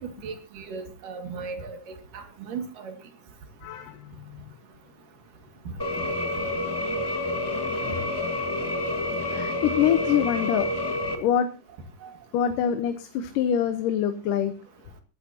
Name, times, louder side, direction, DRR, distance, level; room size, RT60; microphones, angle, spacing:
voice 1, 0.2-1.8 2.1-2.9 12.0-12.1, right 5 dB, 80° right, 6 dB, 3.7 m, -36 dB
voice 2, 3.6-4.4 9.2-10.7 11.2-11.5 12.3-14.5, left 9 dB, 90° left, 8 dB, 2.6 m, -25 dB
sound 1, 5.8-11.2, left 1 dB, 30° left, 0.4 m, -28 dB
22.5 x 12.0 x 2.8 m, 0.30 s
omnidirectional pair, 3.7 m